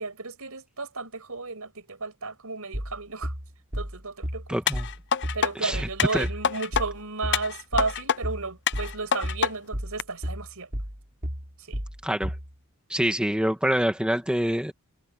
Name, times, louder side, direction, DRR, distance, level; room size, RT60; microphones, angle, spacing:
voice 1, 0.0-3.3 3.7-4.6 5.3-10.7 11.6-11.8, right 4 dB, 70° right, 7.4 m, -33 dB
sound 1, 2.7-12.5, equal, 40° right, 5.3 m, -33 dB
voice 2, 4.5-4.9 5.6-6.3 12.0-12.3 12.9-14.7, equal, 5° right, 1.7 m, -25 dB
sound 2, 4.7-5.5 6.0-6.9 7.3-8.2 8.7-9.5 10.0-10.1, left 8 dB, 55° left, 0.6 m, -26 dB
head